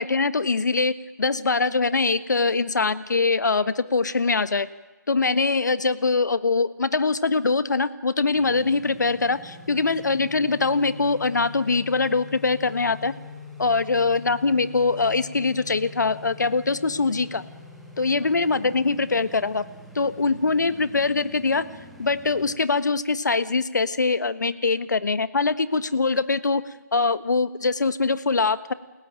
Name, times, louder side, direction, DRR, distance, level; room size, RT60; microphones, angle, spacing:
voice 1, 0.0-4.7 5.1-13.1 13.6-17.4 18.0-19.6 19.9-21.6 22.0-26.6 26.9-28.7, left 4 dB, 65° left, 14 dB, 1.4 m, -23 dB
sound 1, 8.3-22.6, left 3 dB, ahead, 1.6 m, -44 dB
29.5 x 17.0 x 8.9 m, 1.2 s
figure-of-eight pair, 165°, 10 cm